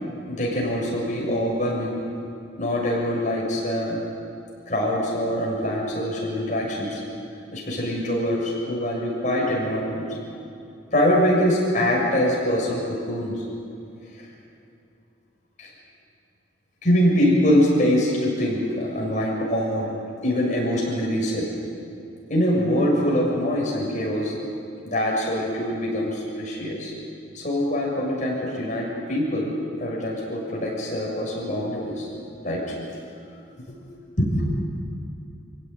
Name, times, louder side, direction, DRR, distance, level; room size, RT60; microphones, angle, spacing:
voice 1, 0.3-2.0 2.6-4.0 4.7-7.0 7.5-10.1 10.9-13.4 15.6-15.7 16.8-19.9 20.2-21.5 22.3-24.3 24.8-26.9 27.3-29.5 29.8-32.6 33.7-33.8 34.2-34.4, equal, 40° left, -3 dB, 6.9 m, -24 dB
26.5 x 16.5 x 9.3 m, 2.6 s
head